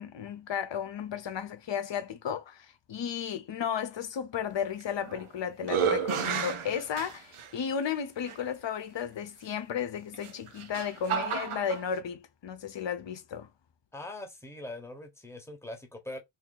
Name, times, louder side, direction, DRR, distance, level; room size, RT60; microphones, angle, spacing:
voice 1, 0.0-13.5, left 7 dB, 60° left, 0.8 m, -34 dB
sound 1, 4.8-5.3 5.6-7.5 8.3-8.4 10.1-11.8, right 7 dB, 75° right, 0.8 m, -31 dB
voice 2, 13.9-16.2, left 1 dB, 5° left, 0.9 m, -42 dB
2.8 x 2.7 x 3.9 m
wide cardioid pair, 115°, 50 cm